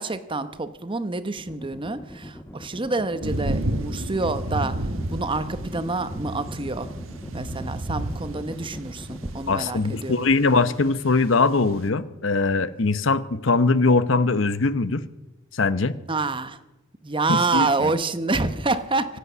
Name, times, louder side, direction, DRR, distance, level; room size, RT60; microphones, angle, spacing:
voice 1, 0.0-4.8 5.1-6.9 7.3-10.2 16.1-16.6 17.0-19.2, right 3 dB, 25° right, 12 dB, 0.9 m, -27 dB
sound 1, 1.4-9.8, left 1 dB, 10° left, 1.0 m, -40 dB
sound 2, 3.2-11.9, right 1 dB, 85° right, 1.3 m, -32 dB
voice 2, 9.5-15.1 15.5-16.0 17.3-17.9, left 3 dB, 70° left, 14 dB, 0.9 m, -21 dB
24.5 x 8.3 x 6.9 m, 1.0 s
head